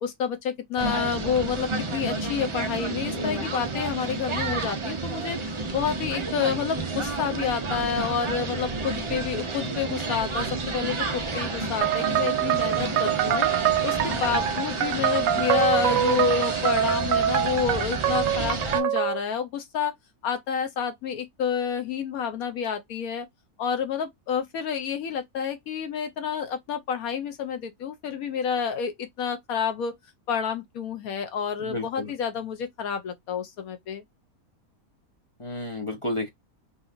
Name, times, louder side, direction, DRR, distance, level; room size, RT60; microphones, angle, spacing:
voice 1, 0.0-5.4 5.7-13.5 13.8-19.9 20.2-23.3 23.6-29.9 30.3-34.0, left 7 dB, 75° left, 1.2 m, -29 dB
sound 1, 0.8-18.8, right 3 dB, 45° right, 0.4 m, -30 dB
voice 2, 3.1-3.4 31.6-32.1 35.4-36.3, left 1 dB, 40° left, 0.4 m, -32 dB
sound 2, 11.8-19.2, right 11 dB, 70° right, 0.9 m, -25 dB
3.7 x 2.7 x 2.4 m
omnidirectional pair, 1.6 m